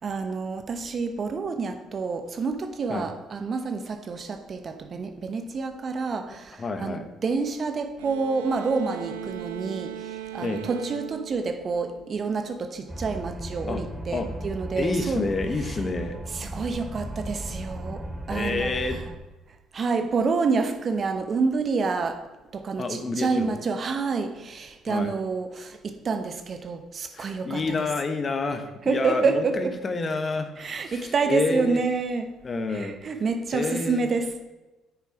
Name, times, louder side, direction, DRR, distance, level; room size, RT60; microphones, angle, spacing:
voice 1, 0.0-15.2 16.3-19.0 19.7-27.6 28.9-29.8 30.6-32.3 32.7-34.4, right 4 dB, 45° right, 1.1 m, -28 dB
voice 2, 6.6-7.1 10.4-10.6 13.7-13.8 14.1-14.3 14.8-16.2 18.3-19.0 22.8-23.6 24.9-25.1 27.1-31.8 32.4-33.0 33.5-34.1, left 3 dB, 35° left, 1.2 m, -29 dB
sound 1, 8.0-12.4, right 13 dB, 80° right, 0.4 m, -39 dB
sound 2, 12.9-19.2, right 1 dB, 15° right, 1.4 m, -36 dB
9.4 x 7.1 x 4.5 m
hypercardioid pair, 50°, 0 cm